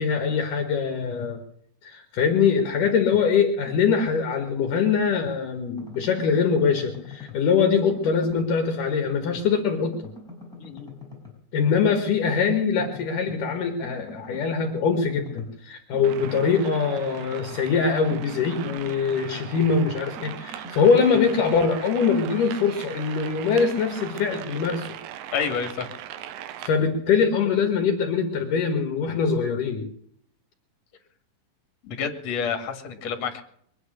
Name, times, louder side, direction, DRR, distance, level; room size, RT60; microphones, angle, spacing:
voice 1, 0.0-1.4 1.8-10.0 11.5-24.9 26.6-29.9, left 6 dB, 65° left, 5 dB, 2.9 m, -23 dB
sound 1, 2.8-3.3 3.7-5.4 5.8-7.5 7.8-9.6 9.8-11.4 11.8-13.4 13.8-17.8 18.1-21.4, left 2 dB, ahead, 5.6 m, -43 dB
voice 2, 10.6-10.9 18.6-18.7 25.3-25.9 31.8-33.4, left 6 dB, 50° left, 5 dB, 3.0 m, -29 dB
sound 2, 16.0-26.7, right 11 dB, 80° right, 2.6 m, -39 dB
23.5 x 9.5 x 6.5 m, 0.66 s
omnidirectional pair, 4.1 m